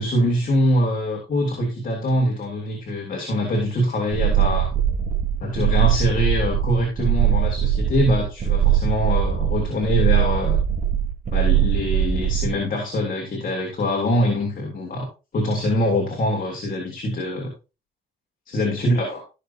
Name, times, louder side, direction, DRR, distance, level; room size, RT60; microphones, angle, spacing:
voice 1, 0.0-4.7 5.4-10.6 11.3-15.1 15.3-17.5 18.5-19.2, left 1 dB, 45° left, 0 dB, 3.3 m, -23 dB
sound 1, 4.1-12.6, right 10 dB, 40° right, 3.1 m, -21 dB
15.0 x 6.5 x 2.8 m, 0.29 s
cardioid pair, 90°, 20 cm